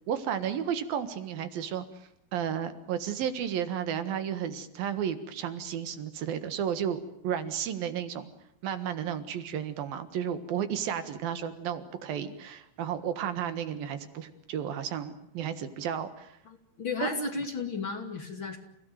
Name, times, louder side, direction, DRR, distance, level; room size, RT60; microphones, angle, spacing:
voice 1, 0.1-1.9 2.3-8.3 8.6-16.4 17.0-17.1, right 9 dB, 75° right, 10 dB, 3.3 m, -33 dB
voice 2, 16.5-18.6, left 4 dB, 35° left, 4 dB, 2.9 m, -34 dB
30.0 x 17.0 x 9.3 m, 0.79 s
omnidirectional pair, 4.2 m